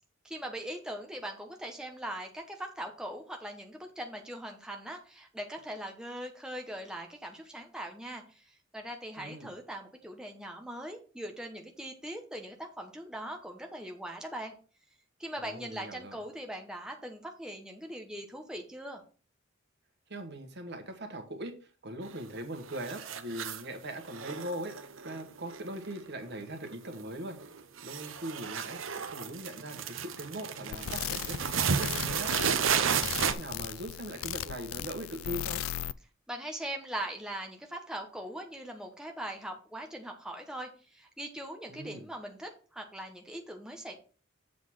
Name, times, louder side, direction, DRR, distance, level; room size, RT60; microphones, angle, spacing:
voice 1, 0.2-14.6 15.2-19.0 36.3-43.9, right 1 dB, 5° right, 2 dB, 1.0 m, -41 dB
voice 2, 9.2-9.5 15.4-16.2 20.1-24.7 25.0-27.4 27.8-32.3 32.8-35.6 41.7-42.1, right 1 dB, 55° right, 6 dB, 1.5 m, -40 dB
sound 1, 22.0-22.4 22.7-23.7 24.1-26.3 26.6-27.0 27.3-33.3, right 7 dB, 75° right, 0.8 m, -33 dB
sound 2, 30.7-35.9, left 11 dB, 85° left, 0.3 m, -37 dB
7.5 x 4.0 x 6.4 m, 0.38 s
head